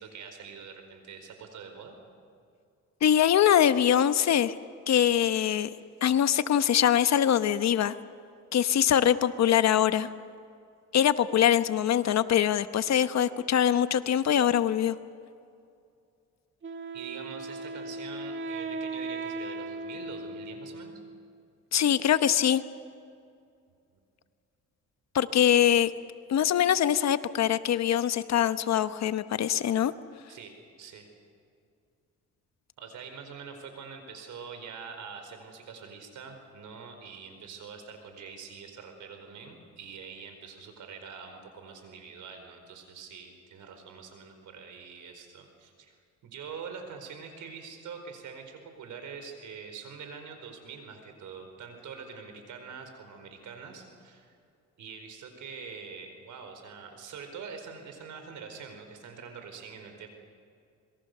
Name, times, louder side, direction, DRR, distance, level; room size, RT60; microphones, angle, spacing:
voice 1, 0.0-1.9 16.9-21.0 25.5-25.6 30.3-30.5 30.8-31.1 32.8-45.9 46.2-54.3 54.8-60.1, right 6 dB, 75° right, 6 dB, 4.7 m, -44 dB
voice 2, 3.0-4.5 4.9-5.7 6.0-7.9 8.5-10.1 10.9-15.0 21.7-22.6 25.1-25.9 26.3-29.9, left 10 dB, 60° left, 12 dB, 1.1 m, -23 dB
Wind instrument woodwind instrument, 16.6-21.4, right 2 dB, 40° right, 1.9 m, -38 dB
26.5 x 22.0 x 6.8 m, 2.4 s
cardioid pair, 90°, 30 cm